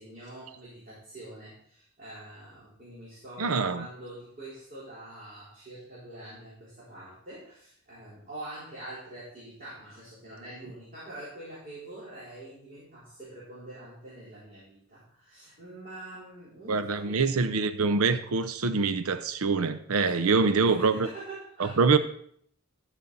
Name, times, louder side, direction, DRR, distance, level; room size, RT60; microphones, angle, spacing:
voice 1, 0.0-17.3 20.1-21.8, right 1 dB, 35° right, 4.2 m, -45 dB
voice 2, 3.4-3.9 16.7-21.1 21.6-22.0, right 4 dB, 80° right, 0.7 m, -25 dB
13.5 x 6.2 x 4.1 m
head